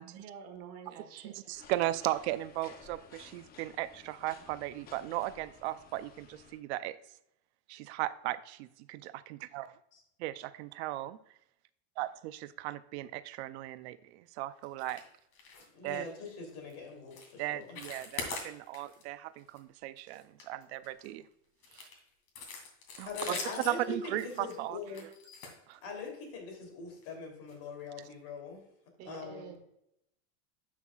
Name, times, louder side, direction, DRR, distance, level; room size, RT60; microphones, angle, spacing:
voice 1, 0.0-1.5 29.0-29.6, right 7 dB, 45° right, 5 dB, 1.3 m, -48 dB
voice 2, 1.2-7.0 7.7-9.7 10.2-11.2 12.0-15.0 15.8-16.1 17.4-21.3 21.7-21.9 23.0-23.4 23.6-24.8 25.7-25.8, right 16 dB, 70° right, 14 dB, 0.5 m, -37 dB
sound 1, 1.5-6.6, left 5 dB, 25° left, 0.7 m, -55 dB
sound 2, 14.8-15.1 15.3-15.7 15.9-16.1 16.5-16.7 17.1-17.3 17.6-19.0 19.4-19.6 20.0-21.1 21.6-26.2 27.0-27.1 27.5-27.6 28.0-28.1, left 4 dB, 85° left, 2.5 m, -43 dB
voice 3, 15.7-17.8 23.1-23.8 24.0-25.1 25.8-28.6 29.0-29.6, left 5 dB, 60° left, 2 dB, 3.1 m, -42 dB
11.0 x 5.8 x 2.3 m, 0.80 s
supercardioid pair, 155°, 34 cm